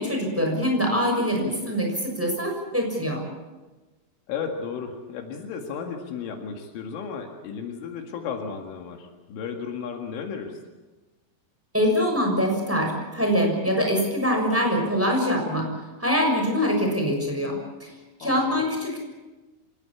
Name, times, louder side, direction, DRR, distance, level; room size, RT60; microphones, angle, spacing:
voice 1, 0.0-3.2 11.7-15.7 16.0-17.9 18.2-19.0, equal, 5° right, 1 dB, 5.8 m, -24 dB
voice 2, 4.3-10.6 18.2-18.6, left 6 dB, 75° left, 3 dB, 4.4 m, -34 dB
26.5 x 19.0 x 8.6 m, 1.2 s
omnidirectional pair, 5.8 m